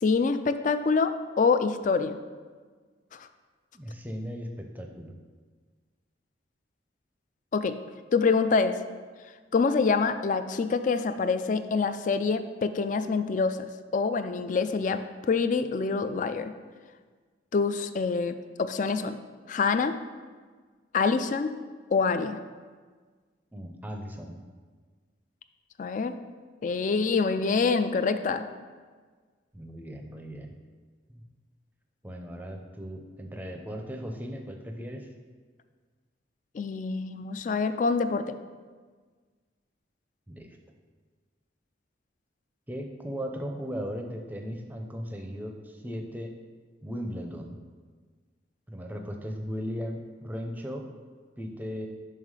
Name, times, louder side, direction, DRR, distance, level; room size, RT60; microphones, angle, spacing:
voice 1, 0.0-2.2 3.1-3.3 7.5-7.8 8.1-8.8 9.5-13.6 13.9-16.5 17.5-19.2 19.5-19.9 20.9-21.5 21.9-22.4 25.8-26.2 26.6-28.4 36.5-38.3, left 4 dB, 40° left, 10 dB, 0.3 m, -26 dB
voice 2, 3.7-5.2 23.5-24.4 29.5-30.5 31.1-31.2 32.0-35.1 40.3-40.6 42.7-46.3 46.8-47.6 48.7-50.9 51.4-51.9, equal, 10° right, 3 dB, 0.5 m, -37 dB
5.6 x 5.6 x 4.8 m, 1.5 s
head